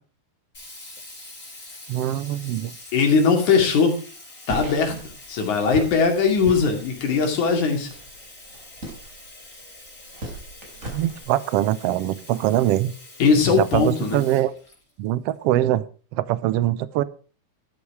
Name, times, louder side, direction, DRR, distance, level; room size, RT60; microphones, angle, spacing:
Sink (filling or washing), 0.5-15.3, left 2 dB, 30° left, 5.9 m, -45 dB
voice 1, 1.9-2.7 10.9-12.9 13.5-14.5 15.0-15.8 16.1-17.0, right 13 dB, 75° right, 17 dB, 1.5 m, -23 dB
voice 2, 2.9-4.0 4.5-5.0 5.3-7.9 13.2-14.2, left 5 dB, 80° left, 3 dB, 3.9 m, -20 dB
sound 1, 4.5-11.2, right 1 dB, 25° right, 4.3 m, -37 dB
13.0 x 8.7 x 4.8 m, 0.38 s
omnidirectional pair, 3.4 m